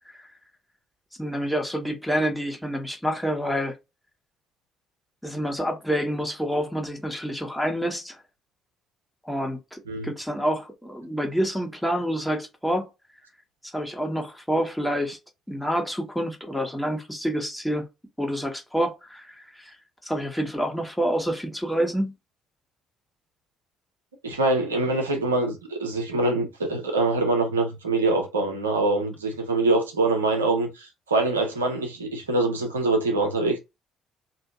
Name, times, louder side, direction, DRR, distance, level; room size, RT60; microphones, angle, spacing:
voice 1, 1.2-3.8 5.2-8.2 9.2-12.9 13.6-15.2 15.5-17.9 18.2-19.7 20.0-22.1, equal, 5° left, 1.1 m, -28 dB
voice 2, 24.2-33.6, right 2 dB, 85° right, 0.5 m, -24 dB
2.7 x 2.6 x 3.6 m
figure-of-eight pair, 45°, 0 cm